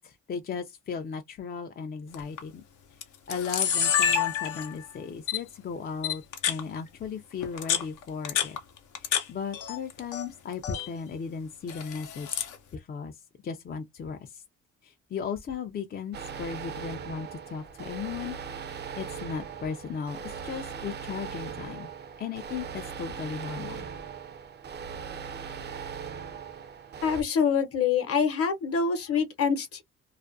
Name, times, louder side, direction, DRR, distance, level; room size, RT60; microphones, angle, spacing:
voice 1, 0.0-2.6 3.3-8.6 9.0-14.4 14.8-18.4 19.0-21.9 22.2-23.8, left 6 dB, 35° left, 0.4 m, -36 dB
Camera, 2.1-2.4 3.0-3.1 3.3-4.9 5.3-5.4 6.0-6.6 7.4-9.2 9.5-10.2 10.5-10.9 11.7-12.5, left 8 dB, 80° left, 0.7 m, -28 dB
sound 1, 16.1-27.2, right 6 dB, 35° right, 0.4 m, -39 dB
voice 2, 27.0-29.8, left 6 dB, 50° left, 0.8 m, -25 dB
2.4 x 2.2 x 2.4 m
cardioid pair, 90°, 30 cm